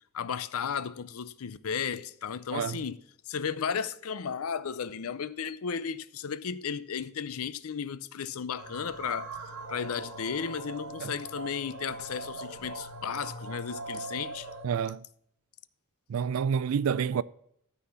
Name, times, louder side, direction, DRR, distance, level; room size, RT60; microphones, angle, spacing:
voice 1, 0.1-3.0 3.3-9.4 9.7-14.5, left 7 dB, 75° left, 0.5 m, -34 dB
sound 1, 8.6-14.7, right 2 dB, 85° right, 1.5 m, -41 dB
voice 2, 14.6-15.0 16.1-17.2, right 7 dB, 70° right, 0.4 m, -28 dB
12.5 x 4.2 x 7.0 m
head